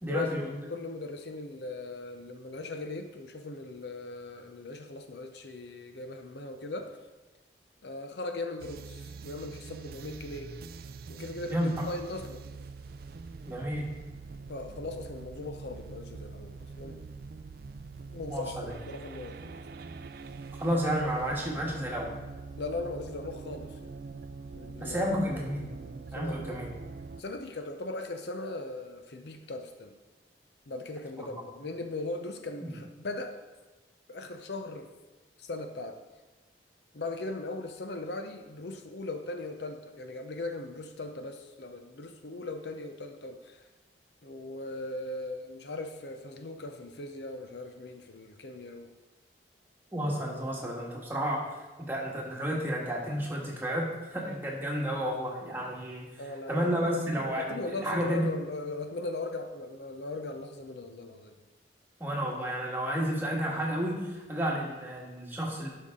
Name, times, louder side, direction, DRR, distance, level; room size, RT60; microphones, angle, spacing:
voice 1, 0.0-0.5 11.5-11.7 13.4-13.9 18.3-18.7 20.6-22.1 24.8-25.7 26.1-26.7 31.2-31.3 32.6-32.7 49.9-51.4 51.9-56.0 56.5-58.3 62.0-65.7, equal, 10° right, -3 dB, 1.6 m, -31 dB
voice 2, 0.7-7.0 7.8-10.5 11.1-12.4 14.5-17.0 18.1-19.7 22.6-23.9 24.5-25.0 26.1-26.6 27.2-30.0 30.7-33.4 34.1-34.9 35.4-36.0 36.9-43.6 44.2-48.9 56.2-61.4, left 2 dB, 70° left, 6 dB, 0.7 m, -39 dB
sound 1, 8.6-27.2, right 4 dB, 55° right, 0.4 m, -44 dB
11.5 x 5.6 x 3.7 m, 1.1 s
head